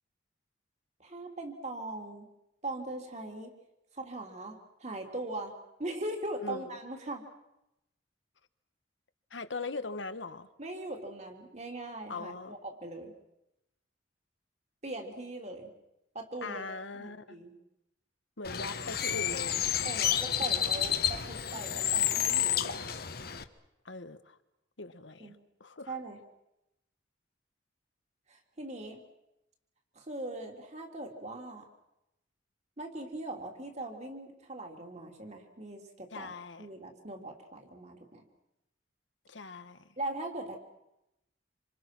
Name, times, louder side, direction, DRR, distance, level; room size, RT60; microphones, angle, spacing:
voice 1, 1.0-2.3 2.6-3.5 3.9-5.5 5.8-7.2 10.6-13.1 14.8-15.7 16.2-16.7 16.9-17.5 19.8-22.9 25.2-25.4 25.9-26.2 28.3-29.0 30.0-31.7 32.8-36.3 36.6-38.2 40.0-40.6, right 2 dB, 40° right, 3 dB, 3.3 m, -40 dB
voice 2, 6.4-6.8 9.3-10.5 12.1-12.6 16.4-17.4 18.4-19.7 23.8-24.4 24.8-26.0 36.1-36.7 39.3-39.9, left 3 dB, 85° left, 11 dB, 1.5 m, -41 dB
Bird, 18.4-23.4, left 10 dB, 55° left, 1.3 m, -30 dB
27.5 x 27.0 x 6.2 m, 0.88 s
head